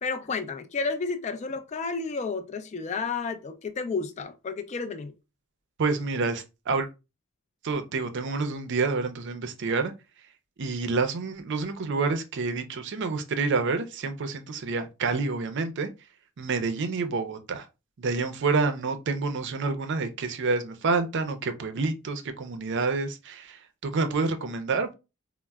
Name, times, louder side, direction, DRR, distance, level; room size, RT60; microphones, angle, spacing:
voice 1, 0.0-5.1, left 4 dB, 35° left, 0.4 m, -31 dB
voice 2, 5.8-6.9 7.6-9.9 10.6-15.9 16.4-17.7 18.0-24.9, right 4 dB, 60° right, 0.5 m, -28 dB
4.1 x 2.0 x 2.3 m
head